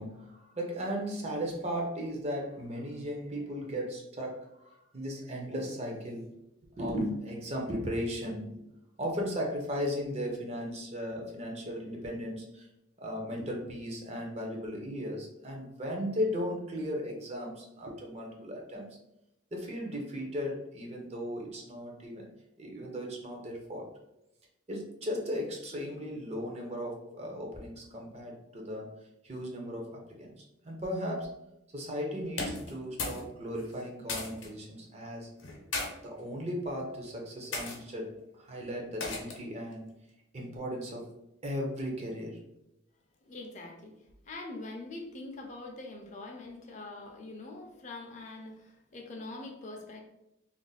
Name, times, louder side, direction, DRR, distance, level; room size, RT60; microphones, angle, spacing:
voice 1, 0.0-6.3 6.8-8.6 9.0-12.7 13.0-18.9 19.5-22.3 22.6-23.9 24.7-28.9 29.2-31.4 31.7-35.3 36.0-39.9 40.3-41.1 41.4-42.4, equal, 35° right, 0 dB, 0.5 m, -36 dB
sound 1, 32.3-33.3 33.5-34.5 35.4-35.9 36.7-36.9 37.5-37.8 39.0-39.5, left 3 dB, 75° left, 0.7 m, -36 dB
voice 2, 43.2-44.0 44.3-50.0, left 2 dB, 35° left, 2 dB, 0.4 m, -43 dB
2.5 x 2.1 x 3.8 m, 0.85 s
head